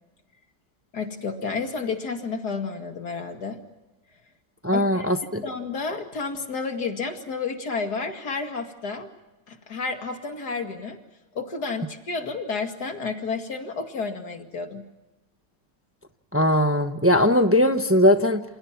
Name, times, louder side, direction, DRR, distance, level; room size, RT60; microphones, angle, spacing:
voice 1, 0.9-3.6 4.7-5.1 5.4-9.1 9.5-11.0 11.3-14.8, left 4 dB, 65° left, 5 dB, 2.7 m, -31 dB
voice 2, 4.6-5.4 16.3-18.4, left 1 dB, 10° right, 8 dB, 0.8 m, -20 dB
28.5 x 28.0 x 6.0 m, 1.0 s
omnidirectional pair, 1.9 m